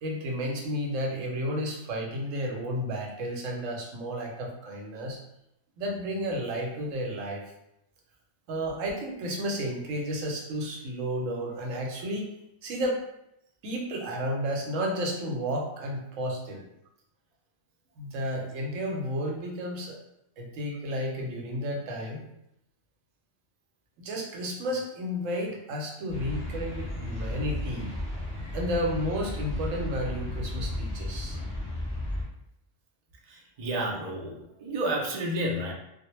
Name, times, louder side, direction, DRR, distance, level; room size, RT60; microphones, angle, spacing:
voice 1, 0.0-5.2 5.8-7.4 8.5-12.3 12.6-13.0 13.6-16.6 18.0-20.0 20.4-22.2 24.0-28.0 28.5-31.4, equal, 90° right, 0 dB, 1.0 m, -32 dB
sound 1, 26.1-32.2, left 1 dB, 5° left, 0.7 m, -34 dB
voice 2, 33.3-35.7, right 1 dB, 60° right, -1 dB, 0.4 m, -31 dB
2.1 x 2.1 x 3.0 m, 0.80 s
omnidirectional pair, 1.3 m